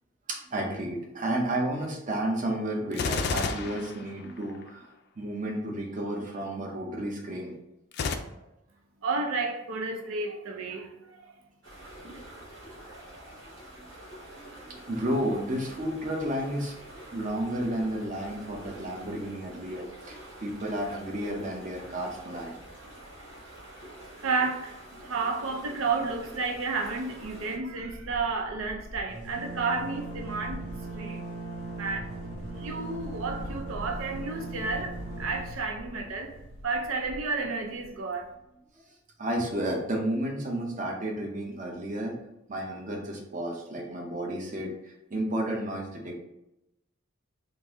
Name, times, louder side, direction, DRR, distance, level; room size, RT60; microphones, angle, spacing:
voice 1, 0.3-4.9 5.2-7.6 11.8-12.0 12.6-12.8 14.7-16.8 17.1-22.6 39.2-42.2 42.5-46.2, right 1 dB, 40° right, 0.7 m, -32 dB
Gunshot gunfire, 2.9-4.7 7.9-8.2, left 4 dB, 55° left, 0.3 m, -30 dB
voice 2, 9.0-11.4 24.2-24.7 25.0-30.6 31.0-31.3 31.8-32.1 32.5-38.3, right 4 dB, 90° right, 0.5 m, -31 dB
sound 1, 11.6-27.6, right 1 dB, 70° right, 1.4 m, -47 dB
sound 2, 26.1-26.5 26.8-26.9 27.2-37.9, right 2 dB, 55° right, 1.1 m, -39 dB
3.9 x 2.5 x 3.5 m
head